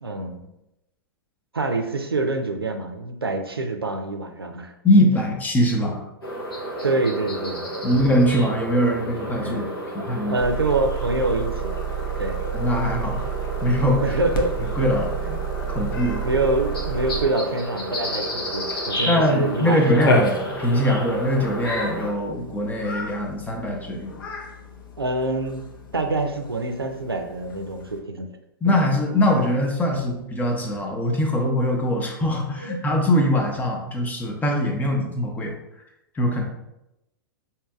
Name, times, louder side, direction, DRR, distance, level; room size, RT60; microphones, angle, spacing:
voice 1, 0.0-0.5 1.5-4.7 6.8-8.0 9.4-11.7 12.2-12.4 14.0-14.5 16.2-20.2 25.0-25.6 25.9-28.3 28.6-28.7 31.9-32.1 32.6-32.8 34.7-34.8, right 2 dB, 90° right, 4 dB, 0.5 m, -26 dB
voice 2, 4.8-6.0 7.8-9.6 9.9-10.4 12.5-13.3 13.6-14.0 14.7-15.4 15.7-16.3 19.1-24.2 28.6-35.5 36.1-36.4, left 1 dB, 15° left, 2 dB, 0.6 m, -22 dB
sound 1, 6.2-22.1, equal, 85° left, 1.0 m, -32 dB
Motor vehicle (road) / Engine, 10.4-17.3, right 9 dB, 40° right, 0.5 m, -30 dB
Cat, 14.3-28.0, left 2 dB, 65° left, 0.7 m, -34 dB
4.9 x 2.8 x 2.3 m, 0.88 s
figure-of-eight pair, 100°, 12 cm